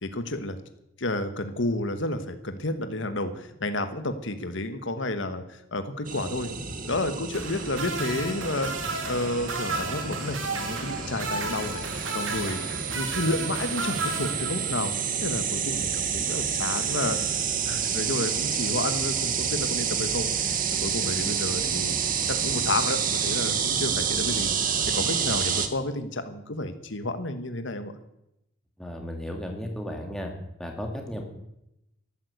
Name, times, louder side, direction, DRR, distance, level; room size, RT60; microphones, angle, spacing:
voice 1, 0.0-0.6 1.0-6.5 6.9-8.7 9.1-12.6 12.9-14.9 15.2-17.2 17.6-20.3 20.8-21.9 22.3-24.5 24.9-27.9, left 2 dB, 70° left, 9 dB, 1.4 m, -31 dB
sound 1, 6.0-25.7, right 7 dB, 45° right, 1.5 m, -29 dB
sound 2, 7.3-14.9 16.3-16.4, right 3 dB, 75° right, 2.5 m, -34 dB
voice 2, 28.8-30.3 30.6-31.2, equal, 5° left, 1 dB, 2.4 m, -34 dB
13.0 x 12.5 x 8.0 m, 0.85 s
head